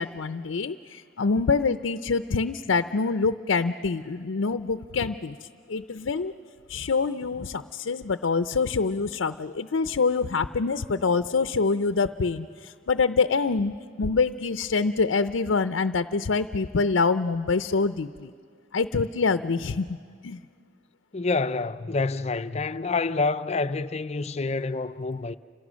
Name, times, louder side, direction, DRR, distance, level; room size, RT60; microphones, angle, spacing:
voice 1, 0.0-6.3 6.7-18.3 18.7-20.0 20.2-20.4, left 4 dB, 80° left, 0.6 m, -25 dB
voice 2, 21.1-25.4, left 3 dB, 35° left, 0.6 m, -27 dB
29.5 x 27.0 x 6.3 m
head